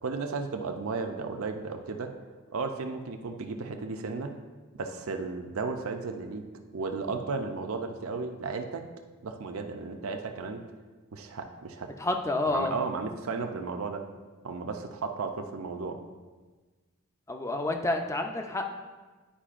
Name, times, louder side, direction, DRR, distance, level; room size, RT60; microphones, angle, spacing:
voice 1, 0.0-2.1 2.5-4.3 4.7-6.5 6.7-8.8 9.2-10.6 11.1-11.9 12.5-14.0 14.4-16.0, right 4 dB, 70° right, 5 dB, 0.6 m, -34 dB
voice 2, 12.0-12.7 17.3-18.7, left 2 dB, 15° left, 4 dB, 0.4 m, -29 dB
10.0 x 4.9 x 2.5 m, 1.3 s
head